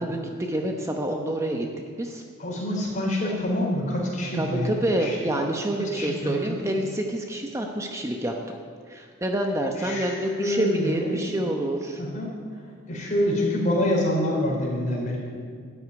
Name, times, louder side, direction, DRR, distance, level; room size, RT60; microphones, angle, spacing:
voice 1, 0.0-1.7 2.0-2.2 4.3-8.6 8.9-12.0, right 1 dB, 15° right, 2 dB, 0.9 m, -27 dB
voice 2, 2.4-5.2 5.9-6.7 9.8-11.3 12.0-12.3 12.9-15.2, left 1 dB, 40° left, -3 dB, 4.2 m, -26 dB
13.5 x 7.9 x 9.8 m, 2.1 s
head